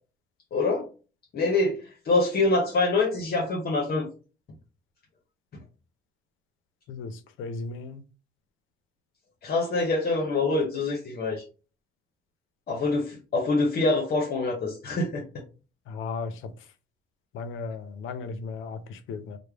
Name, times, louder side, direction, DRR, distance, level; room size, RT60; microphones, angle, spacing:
voice 1, 0.5-0.9 1.3-4.1 9.4-11.4 12.7-15.2, left 3 dB, 55° left, 0.8 m, -25 dB
voice 2, 7.4-8.0 15.9-16.3 17.3-19.4, left 4 dB, 85° left, 0.5 m, -35 dB
3.2 x 2.1 x 3.4 m
cardioid pair, 90°, 20 cm